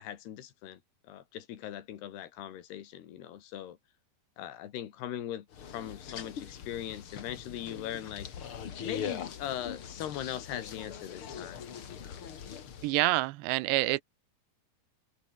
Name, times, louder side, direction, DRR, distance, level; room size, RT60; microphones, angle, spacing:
voice 1, 0.0-3.8 4.4-5.5 5.7-8.3 8.8-12.2, left 11 dB, 75° left, 3.9 m, -40 dB
sound 1, 5.5-12.9, left 7 dB, 45° left, 1.8 m, -42 dB
voice 2, 12.8-14.0, right 20 dB, 85° right, 3.0 m, -27 dB
omnidirectional pair, 4.9 m